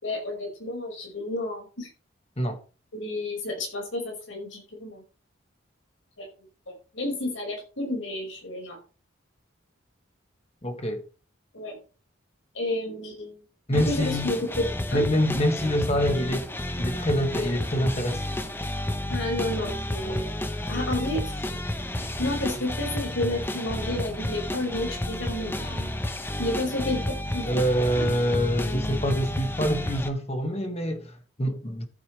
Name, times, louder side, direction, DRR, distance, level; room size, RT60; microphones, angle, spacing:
voice 1, 0.0-1.9 2.9-5.0 6.2-6.3 6.7-8.8 11.5-11.8 12.6-13.4 13.7-15.0 19.1-20.4 20.7-21.5 22.0-25.9 26.4-27.6 28.7-28.8, left 1 dB, 75° left, 5.2 m, -31 dB
voice 2, 10.6-11.0 13.7-14.3 14.9-16.5 16.7-18.2 20.0-20.3 27.5-31.8, equal, 30° left, 1.7 m, -26 dB
sound 1, 13.7-30.1, left 1 dB, 10° left, 0.9 m, -31 dB
14.0 x 8.4 x 3.2 m
head